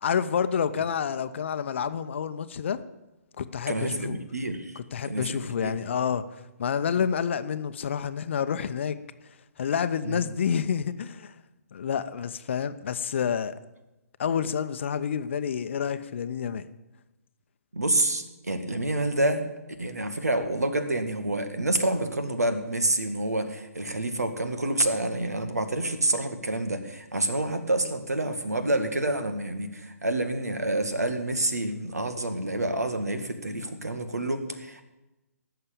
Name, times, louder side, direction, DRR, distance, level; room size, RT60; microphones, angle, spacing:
voice 1, 0.0-2.8 3.4-4.2 4.9-6.2 6.6-9.0 9.6-11.3 11.7-13.5 14.2-16.7, left 7 dB, 45° left, 0.8 m, -28 dB
voice 2, 3.7-5.4 5.6-5.8 10.0-10.2 17.7-19.5 19.8-34.8, right 1 dB, 75° right, 1.9 m, -28 dB
17.5 x 6.8 x 8.5 m
figure-of-eight pair, 130°, 9 cm